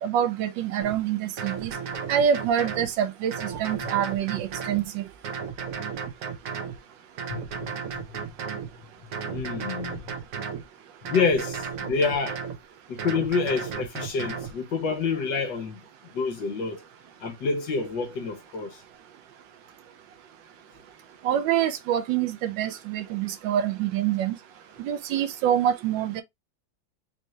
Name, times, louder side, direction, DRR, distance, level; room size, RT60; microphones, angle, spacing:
voice 1, 0.0-1.7 2.1-5.1 21.2-24.3 24.8-26.2, right 9 dB, 75° right, 1.2 m, -26 dB
sound 1, 0.8-1.0 1.4-2.9 3.3-4.8 5.2-6.8 7.2-8.7 9.1-10.6 11.1-12.6 13.0-14.5, right 6 dB, 55° right, 1.0 m, -34 dB
voice 2, 7.3-8.0 9.2-10.1 11.0-12.4 12.9-15.8 16.1-16.8 17.2-18.8, left 4 dB, 65° left, 1.7 m, -28 dB
4.3 x 2.6 x 3.2 m
omnidirectional pair, 2.1 m